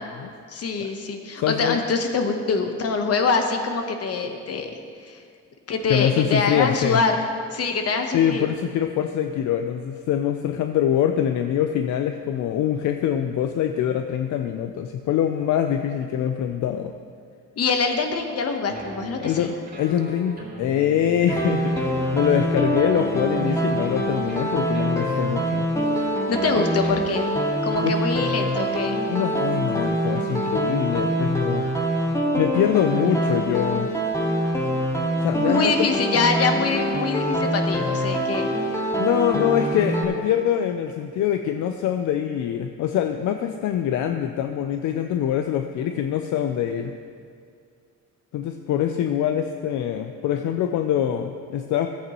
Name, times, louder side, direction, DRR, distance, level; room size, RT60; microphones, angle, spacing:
voice 1, 0.5-4.8 5.0-5.2 5.7-8.5 17.6-19.5 26.3-27.3 27.6-29.0 35.5-38.5, left 4 dB, 55° left, 5 dB, 1.1 m, -24 dB
voice 2, 1.4-1.8 5.9-7.0 8.1-16.9 19.2-19.5 19.8-25.7 25.9-26.1 27.8-28.0 29.1-31.7 32.4-33.9 35.2-35.9 39.0-46.9 48.3-51.9, left 10 dB, 75° left, 7 dB, 0.5 m, -24 dB
sound 1, 18.7-27.1, right 2 dB, 30° right, 2.6 m, -40 dB
sound 2, 21.3-40.0, right 1 dB, 10° left, 1.5 m, -24 dB
14.5 x 8.4 x 3.1 m, 2.2 s
cardioid pair, 90°, 30 cm